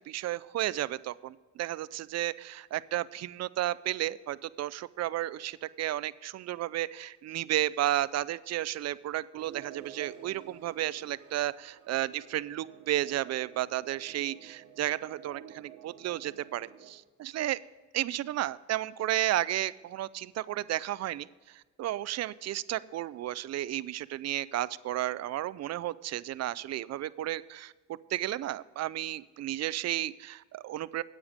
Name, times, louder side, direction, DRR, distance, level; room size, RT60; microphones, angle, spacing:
voice 1, 0.1-17.6 17.9-31.0, right 13 dB, 60° right, 18 dB, 0.4 m, -33 dB
sound 1, 9.4-16.9, right 10 dB, 85° right, 1.2 m, -51 dB
9.5 x 8.9 x 5.1 m, 1.3 s
cardioid pair, 90°, 30 cm